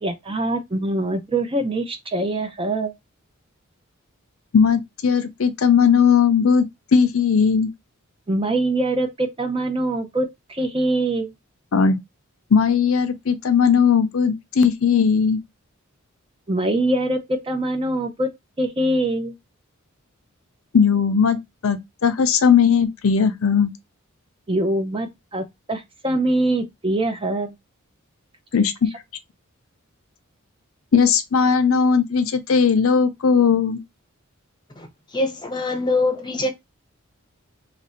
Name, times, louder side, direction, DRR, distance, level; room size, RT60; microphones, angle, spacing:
voice 1, 0.0-2.9 8.3-11.3 16.5-17.2 17.5-18.3 18.6-19.3 24.5-27.5, right 1 dB, 25° right, 0.6 m, -23 dB
voice 2, 4.5-6.7 6.9-7.7 11.7-12.0 12.5-15.4 20.7-23.7 28.5-28.9 30.9-33.8, left 6 dB, 70° left, 0.5 m, -18 dB
voice 3, 34.8-36.5, left 2 dB, 20° left, 0.8 m, -24 dB
3.1 x 2.5 x 4.2 m
head